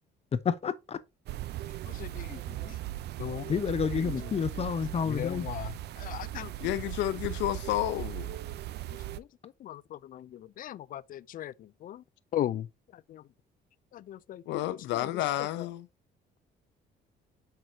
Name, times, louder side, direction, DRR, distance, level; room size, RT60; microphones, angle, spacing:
voice 1, 0.3-1.0 3.5-5.5, left 6 dB, 35° left, 0.9 m, -29 dB
sound 1, 1.3-9.2, right 14 dB, 65° right, 0.6 m, -38 dB
voice 2, 1.9-2.8 3.2-3.5 5.1-6.5 9.2-9.3 9.6-12.0 12.3-12.7 13.1-13.2 13.9-15.1, left 12 dB, 50° left, 0.4 m, -38 dB
voice 3, 6.6-8.3 14.5-15.9, left 14 dB, 85° left, 0.7 m, -31 dB
7.8 x 5.9 x 2.8 m
cardioid pair, 115°, 18 cm